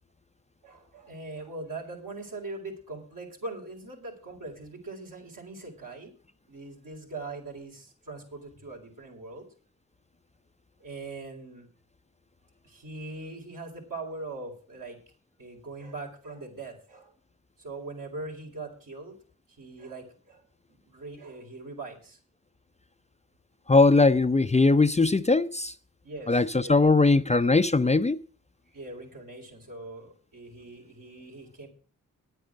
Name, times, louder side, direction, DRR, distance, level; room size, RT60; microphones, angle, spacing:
voice 1, 0.6-6.1 6.5-9.5 10.8-11.7 12.6-15.0 15.4-17.1 17.6-19.2 19.5-20.4 20.7-22.2 26.0-27.0 28.7-31.7, right 3 dB, 70° right, 4.6 m, -41 dB
voice 2, 23.7-25.7 26.3-28.2, left 3 dB, 20° left, 0.6 m, -20 dB
10.5 x 9.0 x 6.2 m
supercardioid pair, 40°, 34 cm